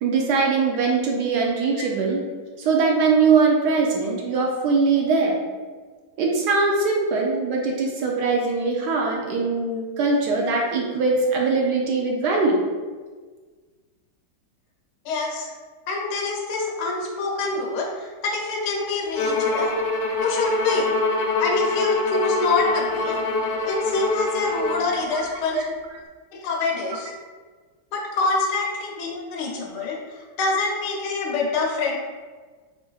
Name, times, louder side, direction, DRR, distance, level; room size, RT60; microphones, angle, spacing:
voice 1, 0.0-2.2 2.6-5.4 6.2-12.6 25.1-25.2 25.5-25.6, right 4 dB, 75° right, -1 dB, 1.1 m, -21 dB
voice 2, 15.0-15.5 15.9-19.7 20.2-20.9 21.4-23.2 23.6-25.6 26.3-27.1 27.9-32.0, left 3 dB, 75° left, -2 dB, 1.2 m, -26 dB
Bowed string instrument, 19.2-24.9, left 3 dB, 90° left, 1.3 m, -24 dB
3.8 x 3.6 x 2.3 m, 1.4 s
omnidirectional pair, 2.0 m